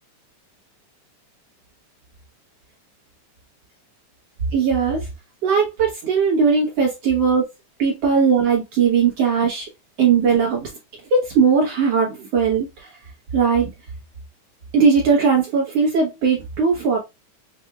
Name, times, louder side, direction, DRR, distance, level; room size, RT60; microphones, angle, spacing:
voice 1, 4.5-5.1 5.4-7.4 7.8-9.7 10.0-10.7 11.1-12.9 13.3-13.7 14.7-17.0, right 5 dB, 60° right, 1.9 m, -19 dB
6.4 x 2.6 x 2.3 m
omnidirectional pair, 3.7 m